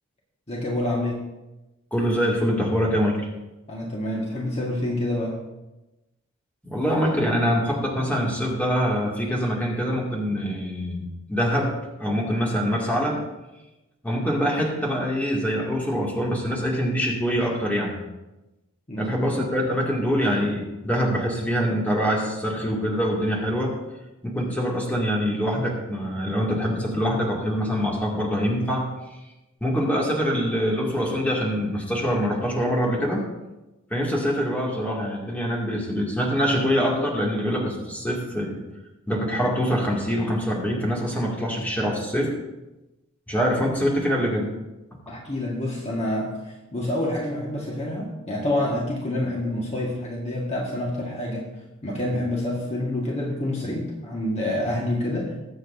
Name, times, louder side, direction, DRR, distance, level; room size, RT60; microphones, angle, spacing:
voice 1, 0.5-1.2 3.7-5.4 18.9-19.3 45.1-51.5 51.8-55.3, left 1 dB, 30° left, -3 dB, 1.6 m, -27 dB
voice 2, 1.9-3.3 6.6-13.2 14.0-18.0 19.0-23.8 24.2-28.9 29.6-33.2 33.9-38.6 39.1-42.3 43.3-44.5, equal, 10° left, -3 dB, 2.3 m, -24 dB
21.5 x 7.9 x 2.7 m, 1.0 s
head